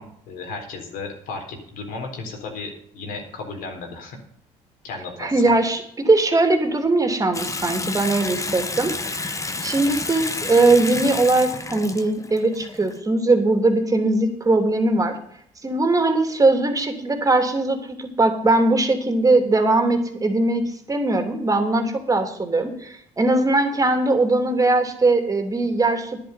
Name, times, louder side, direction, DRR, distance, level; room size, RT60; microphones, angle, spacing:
voice 1, 0.0-4.2 4.8-5.4, left 3 dB, 75° left, 3 dB, 4.0 m, -34 dB
voice 2, 5.2-15.2 15.6-26.2, right 2 dB, 25° right, 6 dB, 2.9 m, -20 dB
Water tap faucet / Sink (filling or washing) / Bathtub (filling or washing), 7.3-13.0, left 3 dB, 20° left, 1.2 m, -30 dB
11.0 x 10.5 x 5.7 m, 0.68 s
supercardioid pair, 80°, 15 cm